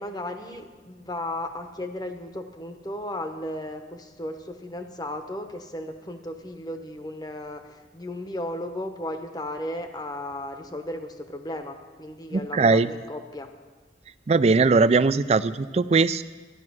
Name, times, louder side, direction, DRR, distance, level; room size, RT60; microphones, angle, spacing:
voice 1, 0.0-13.5, left 1 dB, 25° left, 7 dB, 1.0 m, -35 dB
voice 2, 12.3-12.9 14.3-16.2, right 4 dB, 35° right, 14 dB, 0.4 m, -20 dB
12.5 x 11.0 x 6.2 m, 1.3 s
head